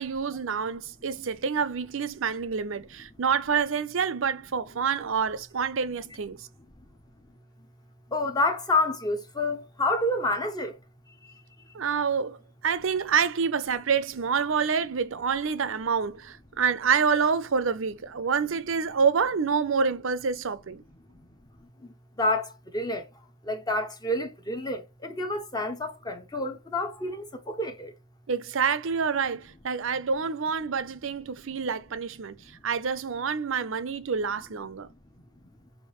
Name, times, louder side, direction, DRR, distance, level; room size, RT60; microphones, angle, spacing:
voice 1, 0.0-6.4 11.7-12.4 12.6-20.8 28.3-32.4 32.6-34.9, right 6 dB, 70° right, 0.6 m, -27 dB
voice 2, 8.1-10.7 11.2-11.3 21.8-23.1 23.4-27.9, left 2 dB, 20° left, 0.7 m, -29 dB
6.5 x 2.6 x 3.0 m
head